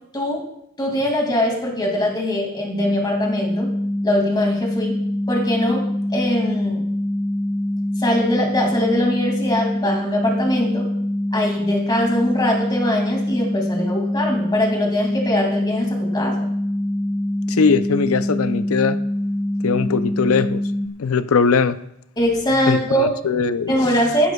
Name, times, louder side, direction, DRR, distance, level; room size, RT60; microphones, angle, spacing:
voice 1, 0.8-3.7 4.0-5.0 5.3-6.8 8.0-10.9 11.3-16.5 22.2-23.1 23.7-24.3, left 1 dB, 20° left, 1 dB, 2.4 m, -22 dB
sound 1, 2.7-20.9, left 1 dB, 15° right, 0.6 m, -24 dB
voice 2, 17.5-19.0 19.6-20.6 21.0-21.8 22.7-23.7, left 5 dB, 75° left, 12 dB, 0.5 m, -20 dB
15.5 x 11.5 x 2.3 m, 0.76 s
head